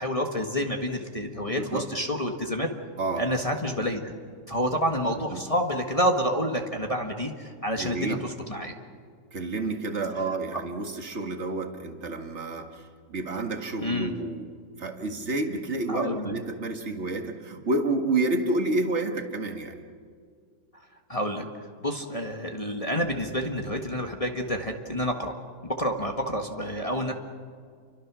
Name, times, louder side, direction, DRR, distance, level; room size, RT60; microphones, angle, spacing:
voice 1, 0.0-2.7 3.2-4.1 4.5-8.7 10.5-10.6 13.8-14.1 15.9-16.3 21.1-25.3 25.6-27.1, equal, 20° left, 2 dB, 1.7 m, -28 dB
voice 2, 1.6-1.9 3.0-3.2 5.3-5.4 7.8-8.2 9.3-14.5 14.8-19.8, right 2 dB, 40° right, 4 dB, 2.1 m, -29 dB
30.0 x 24.5 x 6.3 m, 2.1 s
omnidirectional pair, 1.9 m